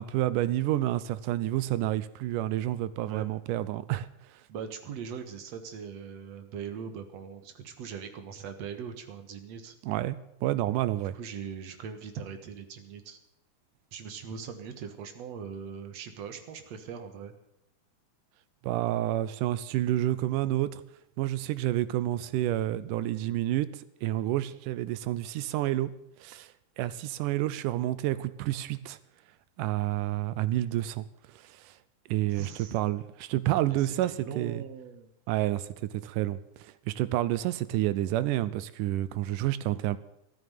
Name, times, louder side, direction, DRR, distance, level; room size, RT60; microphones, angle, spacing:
voice 1, 0.0-4.4 9.8-11.2 18.6-20.8 21.2-25.9 26.2-29.0 29.6-31.1 31.3-31.8 32.1-34.6 35.3-40.0, right 14 dB, 90° right, 16 dB, 2.3 m, -29 dB
voice 2, 3.0-3.3 4.5-9.8 11.1-13.2 13.9-17.3 32.2-32.7 33.7-35.1, right 7 dB, 60° right, 8 dB, 2.3 m, -41 dB
13.0 x 9.1 x 9.2 m, 0.79 s
omnidirectional pair, 3.6 m